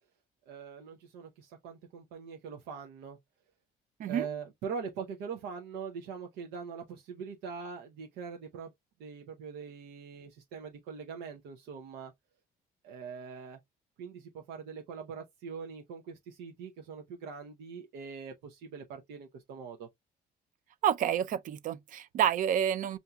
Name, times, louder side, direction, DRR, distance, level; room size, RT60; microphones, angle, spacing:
voice 1, 0.5-3.2 4.0-8.7 9.0-12.1 12.8-13.6 14.0-19.9, right 6 dB, 90° right, 0.7 m, -42 dB
voice 2, 20.8-23.0, right 9 dB, 50° right, 0.4 m, -29 dB
5.7 x 2.6 x 2.2 m
cardioid pair, 110°, 17 cm